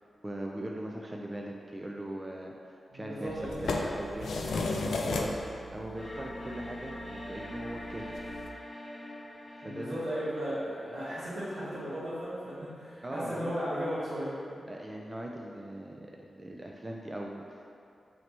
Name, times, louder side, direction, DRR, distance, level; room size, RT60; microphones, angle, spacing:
voice 1, 0.2-4.7 5.1-5.3 5.7-8.2 9.6-10.0 13.0-13.5 14.7-17.7, right 1 dB, 30° right, -1 dB, 0.4 m, -40 dB
voice 2, 2.9-3.7 9.6-14.6, equal, 85° right, -11 dB, 1.4 m, -36 dB
sound 1, 3.3-8.5, left 3 dB, 85° left, 0.3 m, -36 dB
sound 2, 6.0-12.9, left 1 dB, 40° left, 0.6 m, -44 dB
3.2 x 2.8 x 4.4 m, 2.5 s
cardioid pair, 45°, 0 cm